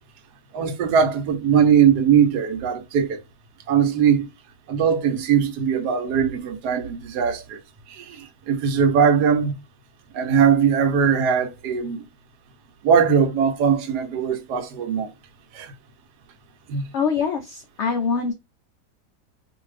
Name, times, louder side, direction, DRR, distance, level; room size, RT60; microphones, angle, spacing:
voice 1, 0.5-3.2 3.7-4.3 4.7-7.6 7.9-9.5 10.1-12.0 12.8-15.1 15.5-15.7 16.7-16.8, right 7 dB, 80° right, 1.2 m, -20 dB
voice 2, 16.9-18.3, left 5 dB, 80° left, 0.6 m, -24 dB
2.6 x 2.5 x 3.1 m
omnidirectional pair, 1.7 m